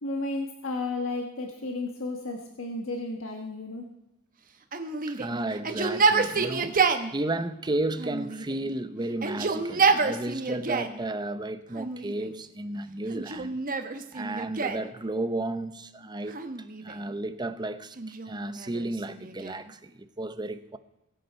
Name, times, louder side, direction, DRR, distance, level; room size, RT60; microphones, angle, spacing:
voice 1, 0.0-3.8, left 2 dB, 75° left, 1.4 m, -33 dB
Yell, 4.7-7.1 8.0-8.7 9.1-11.0 11.7-12.4 13.1-14.9 16.3-17.1 18.0-19.7, right 4 dB, 45° right, 1.1 m, -28 dB
voice 2, 5.1-13.5 14.1-16.4 16.8-20.8, right 2 dB, 20° right, 0.7 m, -33 dB
22.0 x 8.1 x 4.5 m
head